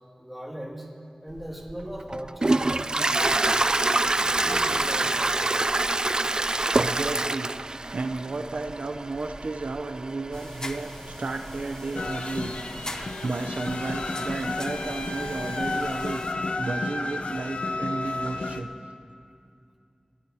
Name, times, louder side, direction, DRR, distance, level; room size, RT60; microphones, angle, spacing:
voice 1, 0.2-0.9 1.2-3.4 4.0-5.4, equal, 5° right, -2 dB, 2.4 m, -39 dB
Toilet flush, 1.4-16.1, right 2 dB, 35° right, 0.3 m, -28 dB
voice 2, 6.7-7.5 7.9-12.5 12.8-16.2 16.5-18.7, right 3 dB, 85° right, 5 dB, 0.6 m, -33 dB
sound 1, 10.3-16.3, left 1 dB, 30° left, 0.8 m, -42 dB
sound 2, 12.0-18.6, left 2 dB, 70° left, 0.7 m, -32 dB
22.0 x 17.5 x 2.8 m, 2.5 s
wide cardioid pair, 70°, 2 cm